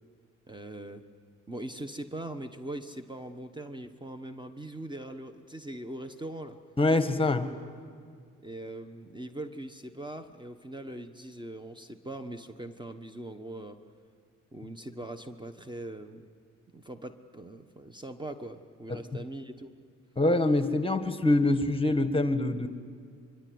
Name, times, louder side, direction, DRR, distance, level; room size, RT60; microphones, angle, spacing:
voice 1, 0.5-1.0 1.5-6.6 8.4-13.8 14.5-16.3 16.7-19.7, right 1 dB, 15° right, 8 dB, 1.2 m, -41 dB
voice 2, 6.8-7.5 18.9-19.0 20.2-22.7, left 2 dB, 20° left, 10 dB, 1.6 m, -25 dB
25.0 x 23.5 x 9.5 m, 2.1 s
cardioid pair, 90°, 30 cm